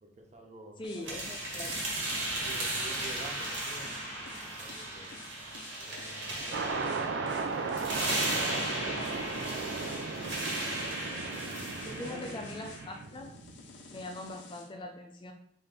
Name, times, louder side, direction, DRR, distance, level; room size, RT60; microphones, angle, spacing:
voice 1, 0.0-1.2 2.4-5.2 5.7-7.7 11.8-12.2, right 1 dB, 40° right, 2 dB, 0.8 m, -49 dB
sound 1, 0.8-14.7, left 4 dB, 70° left, 0.6 m, -51 dB
voice 2, 0.8-1.9 11.1-11.4 11.8-13.4 13.9-15.3, left 1 dB, 25° left, 4 dB, 0.4 m, -42 dB
sound 2, 1.0-13.0, right 1 dB, 85° right, 1.7 m, -36 dB
sound 3, 6.5-14.1, right 4 dB, 70° right, 0.4 m, -36 dB
5.7 x 2.7 x 3.4 m, 0.70 s
head